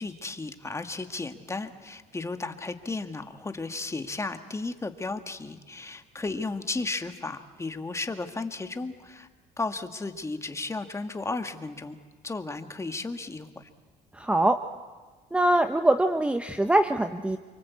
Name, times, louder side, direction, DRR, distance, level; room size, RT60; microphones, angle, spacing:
voice 1, 0.0-9.3 9.6-12.0 12.2-13.7, left 3 dB, 15° left, 7 dB, 1.9 m, -34 dB
voice 2, 14.1-14.6 15.3-17.4, right 1 dB, 5° right, 8 dB, 0.9 m, -23 dB
28.5 x 24.5 x 8.4 m, 1.4 s
cardioid pair, 110°, 17 cm